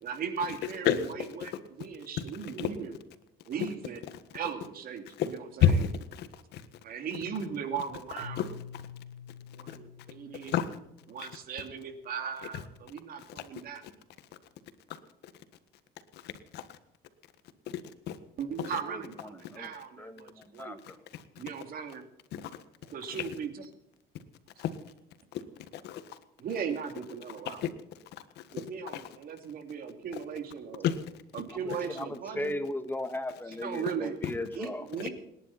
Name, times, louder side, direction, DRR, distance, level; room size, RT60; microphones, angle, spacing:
voice 1, 0.0-1.5 1.8-2.9 3.5-4.0 4.3-5.8 6.8-8.4 9.5-10.6 11.1-13.8 18.4-20.8 21.4-22.1 22.9-23.7 26.4-27.6 28.5-30.9 31.3-32.6 33.6-34.2 34.5-35.1, right 6 dB, 60° right, 6 dB, 2.8 m, -38 dB
voice 2, 5.6-6.6 8.4-8.5 10.5-10.7 13.4-13.5 16.2-16.6 18.1-18.2 18.6-18.7 21.1-21.2 22.3-22.5 23.1-23.2 24.6-24.7 25.7-26.0 27.4-27.7 28.4-28.6 28.9-29.0 30.8-31.0, left 8 dB, 80° left, 11 dB, 1.6 m, -29 dB
Keyboard (musical), 8.2-11.1, left 6 dB, 35° right, 2.3 m, -47 dB
voice 3, 18.9-19.7 20.0-21.0 31.9-34.9, left 1 dB, 10° left, 8 dB, 1.8 m, -37 dB
28.5 x 11.0 x 4.3 m, 0.84 s
cardioid pair, 110°, 17 cm